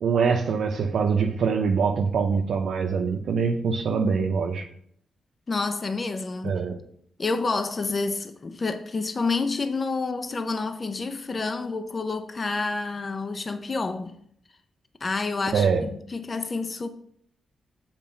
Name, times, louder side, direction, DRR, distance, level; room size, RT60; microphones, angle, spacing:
voice 1, 0.0-4.7 6.4-6.8 15.5-15.8, right 5 dB, 75° right, 0.8 m, -24 dB
voice 2, 5.5-6.6 7.2-14.2 15.0-16.9, left 3 dB, 40° left, 0.7 m, -29 dB
7.5 x 4.8 x 5.7 m
cardioid pair, 70°, 0 cm